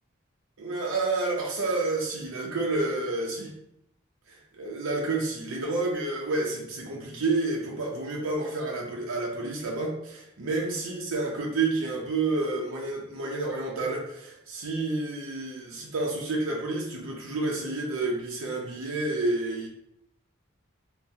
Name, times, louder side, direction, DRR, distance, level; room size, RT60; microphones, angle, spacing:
voice 1, 0.6-3.5 4.3-19.7, right 2 dB, 80° right, -2 dB, 0.6 m, -29 dB
3.8 x 2.1 x 2.7 m, 0.74 s
head